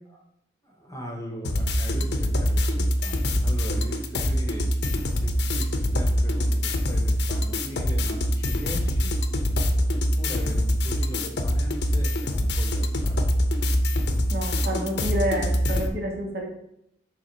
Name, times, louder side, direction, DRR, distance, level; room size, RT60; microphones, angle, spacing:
voice 1, 0.6-9.1 9.9-13.3, equal, 20° left, 2 dB, 1.0 m, -39 dB
sound 1, 1.4-15.9, equal, 65° left, 0.7 m, -24 dB
voice 2, 14.3-16.5, right 1 dB, 55° right, -1 dB, 1.7 m, -29 dB
6.4 x 3.7 x 5.3 m, 0.76 s
head